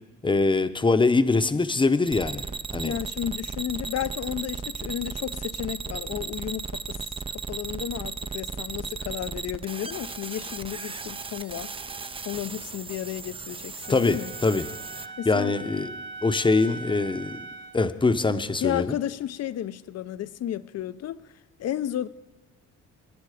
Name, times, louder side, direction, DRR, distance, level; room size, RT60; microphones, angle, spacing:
voice 1, 0.2-2.4 2.7-2.9 13.9-14.7 15.3-15.9 16.2-17.4 17.7-19.0, left 3 dB, 15° left, 0.8 m, -23 dB
sound 1, 2.1-15.1, right 4 dB, 20° right, 0.5 m, -36 dB
voice 2, 2.8-7.0 7.3-11.7 12.2-14.3 15.2-15.5 18.6-21.2 21.6-22.1, left 11 dB, 55° left, 0.6 m, -32 dB
Wind instrument woodwind instrument, 13.8-17.9, right 3 dB, 40° right, 0.9 m, -41 dB
24.5 x 10.0 x 5.0 m
cardioid pair, 90°, 30 cm